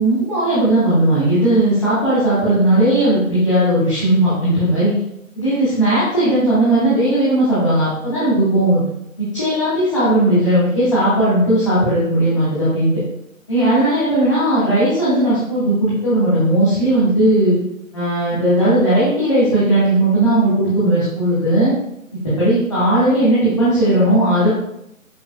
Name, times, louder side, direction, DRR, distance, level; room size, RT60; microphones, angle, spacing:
voice 1, 0.0-4.9 5.4-8.8 9.2-12.9 13.5-17.6 17.9-21.7 22.2-24.5, right 1 dB, 20° left, -13 dB, 2.0 m, -16 dB
10.0 x 6.0 x 2.5 m, 0.80 s
figure-of-eight pair, 175°, 42 cm